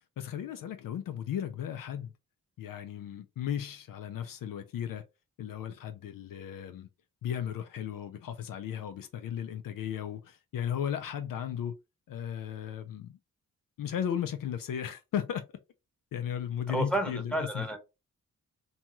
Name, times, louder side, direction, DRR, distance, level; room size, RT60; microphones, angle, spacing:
voice 1, 0.2-2.1 2.6-5.0 5.4-6.9 7.2-11.7 12.1-13.2 13.8-15.4 16.1-17.7, left 9 dB, 65° left, 0.5 m, -35 dB
voice 2, 16.7-17.8, right 1 dB, 5° left, 1.0 m, -31 dB
2.7 x 2.3 x 2.9 m
cardioid pair, 55°, 35 cm